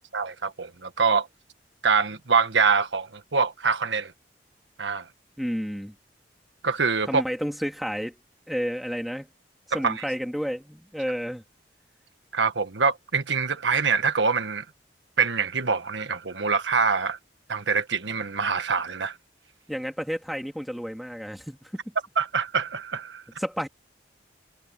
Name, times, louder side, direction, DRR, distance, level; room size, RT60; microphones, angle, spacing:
voice 1, 0.1-1.3 1.8-4.1 4.8-5.1 6.6-7.2 9.7-10.0 12.3-14.6 15.2-17.2 17.5-19.2 22.2-23.2, right 5 dB, 85° right, 1.5 m, -25 dB
voice 2, 5.4-5.9 7.1-8.2 8.5-9.3 9.7-11.4 19.7-21.7 23.4-23.7, equal, ahead, 2.6 m, -31 dB
head